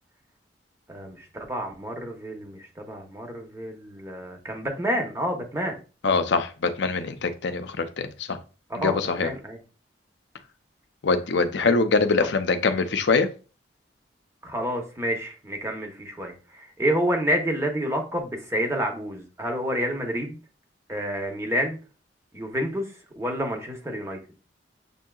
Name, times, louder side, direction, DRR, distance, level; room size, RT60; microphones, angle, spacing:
voice 1, 0.9-5.8 8.7-9.6 14.4-20.4 20.9-21.8 22.3-22.8 23.2-24.2, equal, 15° right, 2 dB, 0.8 m, -29 dB
voice 2, 6.0-8.4 8.8-9.3 11.0-13.3, left 4 dB, 65° left, 8 dB, 0.5 m, -23 dB
6.7 x 2.8 x 2.3 m, 0.34 s
head